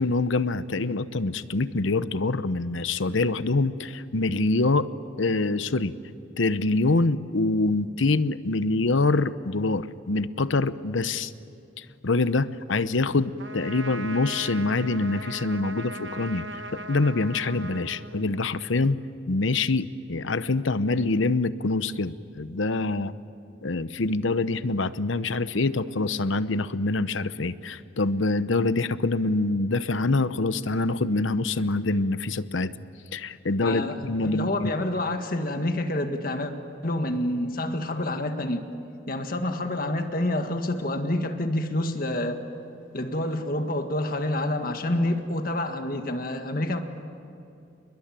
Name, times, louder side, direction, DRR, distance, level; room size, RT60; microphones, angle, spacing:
voice 1, 0.0-4.9 5.2-5.9 6.4-11.3 11.8-16.4 16.7-19.0 19.3-23.1 23.6-32.7 33.1-34.7, left 3 dB, 75° left, 14 dB, 0.9 m, -25 dB
Trumpet, 13.4-18.7, right 1 dB, 65° right, 1.1 m, -39 dB
voice 2, 33.6-36.5 36.8-38.6 39.1-42.4 42.9-46.8, left 1 dB, 45° left, 6 dB, 1.8 m, -28 dB
29.5 x 21.5 x 9.0 m, 2.7 s
head